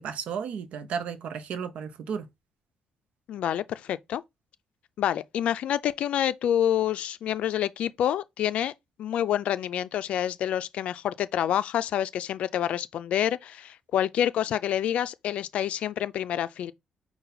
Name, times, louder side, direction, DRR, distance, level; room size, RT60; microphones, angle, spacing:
voice 1, 0.0-2.3, right 7 dB, 70° right, 0.7 m, -33 dB
voice 2, 3.3-4.2 5.0-8.7 9.0-16.7, left 10 dB, 70° left, 0.4 m, -27 dB
5.5 x 2.2 x 4.0 m
cardioid pair, 100°, 2 cm